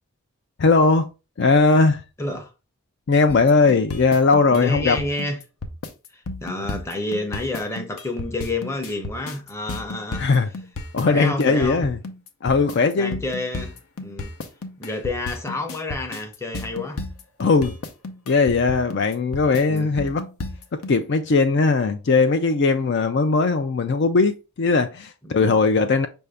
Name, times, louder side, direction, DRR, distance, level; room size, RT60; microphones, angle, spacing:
voice 1, 0.6-1.1 1.4-2.0 3.1-5.0 10.2-10.5 10.9-12.0 12.4-13.2 17.4-17.8 18.3-20.2 20.7-26.1, left 4 dB, 50° left, 0.4 m, -19 dB
voice 2, 2.2-2.5 4.5-5.4 6.1-10.3 11.0-11.9 13.0-13.7 14.0-14.3 14.8-17.0 19.7-19.9 25.2-25.6, left 2 dB, 10° left, 0.7 m, -29 dB
sound 1, 3.3-20.9, left 2 dB, 80° left, 0.7 m, -33 dB
5.6 x 2.6 x 3.3 m
head